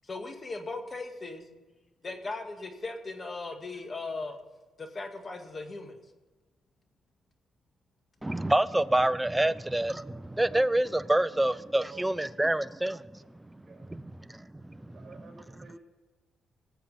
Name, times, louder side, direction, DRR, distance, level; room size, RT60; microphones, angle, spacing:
voice 1, 0.0-1.5 2.0-4.4 4.8-6.0, left 3 dB, 35° left, 2.0 m, -38 dB
voice 2, 8.2-13.1 13.4-13.6 13.9-15.1, right 1 dB, 10° right, 0.5 m, -27 dB
voice 3, 11.0-12.0 13.7-13.9 14.9-15.8, right 4 dB, 30° right, 5.5 m, -50 dB
18.5 x 7.5 x 5.7 m
cardioid pair, 85°, 0 cm